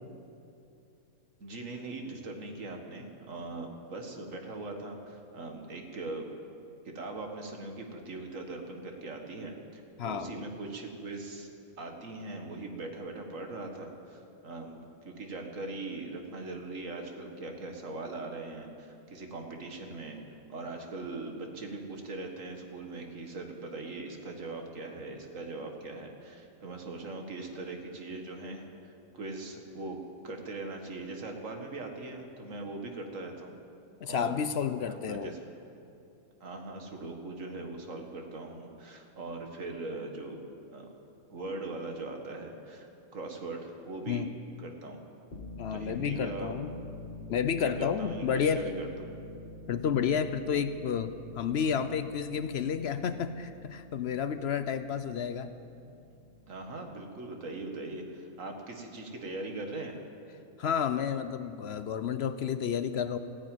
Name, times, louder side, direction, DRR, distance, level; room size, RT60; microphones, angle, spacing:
voice 1, 1.4-6.3 6.8-11.5 11.8-20.2 20.5-30.0 30.2-33.5 34.0-34.4 34.9-35.4 36.4-40.4 40.7-40.9 41.3-44.2 44.6-45.0 45.7-46.5 47.6-48.9 56.5-60.0, right 2 dB, 80° right, 3 dB, 2.0 m, -40 dB
voice 2, 10.0-10.3 34.0-35.3 44.1-44.3 45.6-46.7 47.3-48.7 49.7-55.5 60.6-63.2, left 7 dB, 60° left, 11 dB, 0.8 m, -31 dB
sound 1, 45.3-56.7, left 2 dB, 45° left, 1.5 m, -47 dB
15.5 x 9.9 x 9.1 m, 2.7 s
omnidirectional pair, 1.3 m